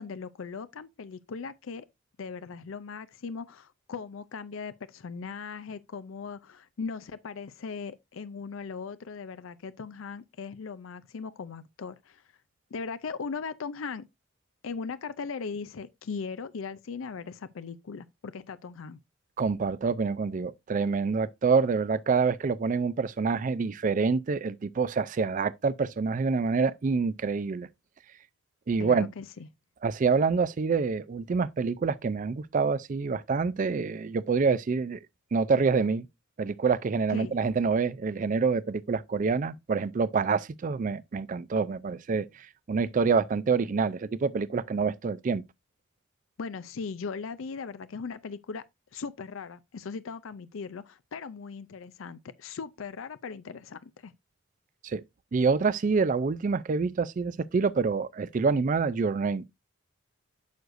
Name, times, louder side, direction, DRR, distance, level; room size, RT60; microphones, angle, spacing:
voice 1, 0.0-1.9 2.2-12.2 12.7-14.1 14.6-19.0 28.8-29.5 37.1-37.4 46.4-48.6 48.9-54.1, left 5 dB, 75° left, 0.5 m, -38 dB
voice 2, 19.4-27.7 28.7-29.1 29.8-35.0 35.3-36.1 36.4-45.4 54.8-55.0 55.3-59.5, right 5 dB, 40° right, 0.4 m, -27 dB
9.3 x 6.4 x 2.5 m
head